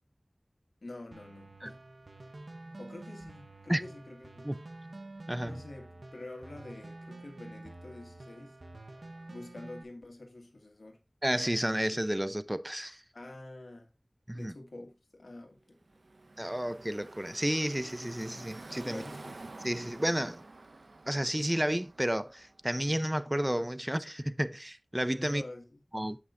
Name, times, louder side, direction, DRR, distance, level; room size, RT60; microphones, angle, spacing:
voice 1, 0.8-1.8 2.8-4.5 5.4-8.6 9.3-11.0 13.1-13.9 14.3-15.8 17.3-17.4 18.8-19.4 21.4-21.5 25.2-25.8, left 2 dB, 90° left, 1.6 m, -47 dB
sound 1, 1.1-9.8, right 2 dB, 70° right, 1.0 m, -48 dB
voice 2, 5.3-5.6 11.2-13.0 14.3-14.5 16.4-19.0 19.6-20.4 21.1-25.4 25.9-26.2, equal, 15° right, 0.6 m, -31 dB
Car passing by / Traffic noise roadway noise, 15.8-22.8, right 2 dB, 85° right, 0.6 m, -49 dB
7.9 x 5.8 x 3.6 m
wide cardioid pair, 50°, 0 cm